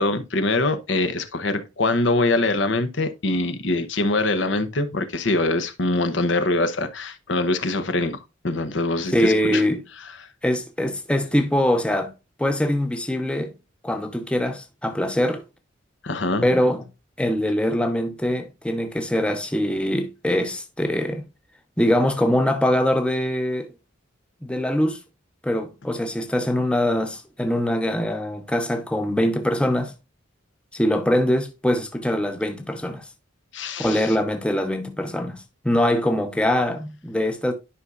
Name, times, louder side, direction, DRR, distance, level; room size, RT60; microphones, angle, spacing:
voice 1, 0.0-9.6 16.0-16.5 33.5-34.2, left 2 dB, 60° left, 0.9 m, -23 dB
voice 2, 9.1-9.8 10.4-12.1 12.4-13.5 13.8-15.4 16.4-16.8 17.2-21.2 21.8-23.7 24.4-25.0 25.4-29.9 30.7-33.1 33.8-37.5, left 1 dB, 5° left, 0.8 m, -23 dB
11.0 x 5.5 x 2.4 m
head